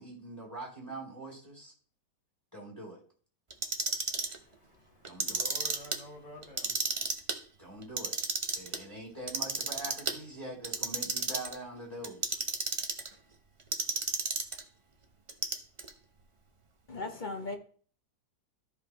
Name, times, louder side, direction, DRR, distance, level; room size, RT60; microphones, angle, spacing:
voice 1, 0.0-1.7 2.5-3.0 5.0-5.4 7.6-8.1 8.5-12.4, right 2 dB, 10° left, 2.4 m, -43 dB
Clock, 3.5-4.4 5.0-6.0 6.4-7.4 7.8-8.8 9.3-10.1 10.6-11.6 12.0-13.1 13.7-14.6 15.3-15.9, right 3 dB, 40° right, 0.4 m, -32 dB
voice 2, 4.3-7.1, left 1 dB, 75° left, 3.0 m, -50 dB
voice 3, 16.9-17.6, left 3 dB, 35° left, 0.9 m, -37 dB
13.5 x 5.0 x 2.9 m
omnidirectional pair, 1.9 m